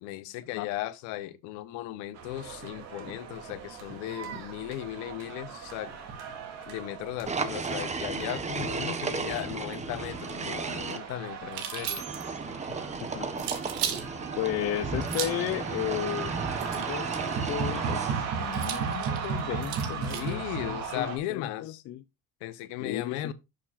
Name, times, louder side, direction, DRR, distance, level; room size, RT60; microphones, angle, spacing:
voice 1, 0.0-5.9 6.7-12.0 20.1-21.8 22.4-23.3, left 14 dB, 85° left, 1.1 m, -36 dB
sound 1, 2.1-21.2, right 6 dB, 60° right, 3.1 m, -37 dB
sound 2, 7.3-11.0 12.0-18.4, right 4 dB, 25° right, 1.3 m, -34 dB
sound 3, 11.5-12.4 13.4-14.1 15.0-15.5 16.6-17.4 18.5-20.3, right 9 dB, 85° right, 2.1 m, -35 dB
voice 2, 13.0-13.4 14.4-22.0 22.8-23.3, left 13 dB, 55° left, 0.6 m, -35 dB
11.5 x 6.9 x 2.6 m
cardioid pair, 110°, 29 cm